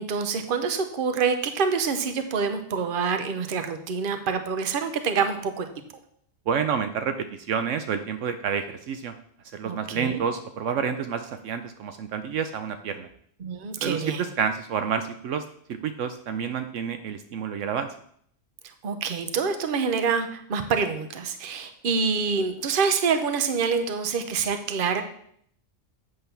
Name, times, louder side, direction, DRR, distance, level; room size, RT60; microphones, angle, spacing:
voice 1, 0.0-5.7 9.6-10.2 13.4-14.3 18.8-25.0, right 5 dB, 50° right, 8 dB, 0.9 m, -26 dB
voice 2, 6.5-9.1 9.5-13.1 13.8-15.4 15.7-17.9, right 7 dB, 75° right, 8 dB, 0.9 m, -29 dB
8.1 x 3.7 x 6.8 m, 0.65 s
omnidirectional pair, 1.4 m